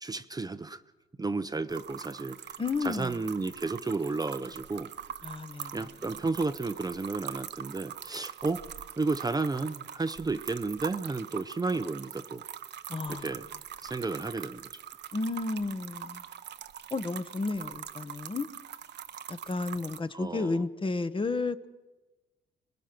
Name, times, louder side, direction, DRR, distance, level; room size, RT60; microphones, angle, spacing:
voice 1, 0.0-0.8 1.2-2.4 2.8-4.9 5.7-8.6 9.0-12.4 13.1-13.5 13.8-14.7 20.1-20.6, right 3 dB, 20° right, 0.7 m, -32 dB
sound 1, 1.7-20.0, right 9 dB, 60° right, 0.9 m, -43 dB
voice 2, 2.6-3.2 5.2-5.8 12.9-13.3 15.1-16.2 16.9-18.5 19.3-21.7, left 3 dB, 25° left, 1.0 m, -32 dB
26.0 x 20.5 x 6.0 m
cardioid pair, 90°, 20 cm